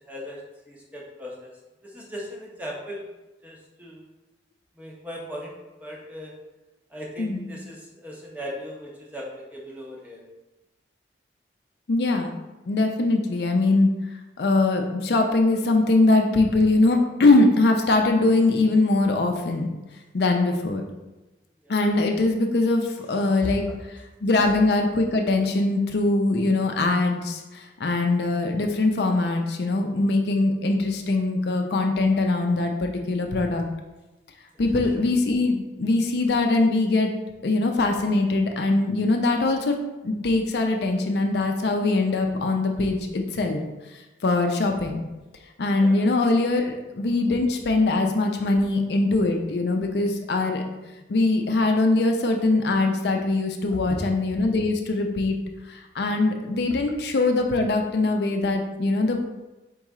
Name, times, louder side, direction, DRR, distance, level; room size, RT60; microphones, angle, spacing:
voice 1, 0.1-0.4 0.7-1.5 1.8-3.1 3.4-4.0 4.8-5.5 5.8-6.3 6.9-10.2 21.6-21.7 23.4-23.5 34.6-34.7 45.8-46.0 53.9-54.0, equal, 10° right, -3 dB, 0.7 m, -38 dB
voice 2, 11.9-13.9 14.4-19.7 20.1-20.8 21.7-33.6 34.6-37.1 37.4-39.8 40.0-43.6 44.2-45.0 45.6-50.6 51.1-55.4 55.7-59.3, left 2 dB, 65° left, 3 dB, 0.5 m, -22 dB
4.6 x 3.1 x 3.6 m, 1.1 s
head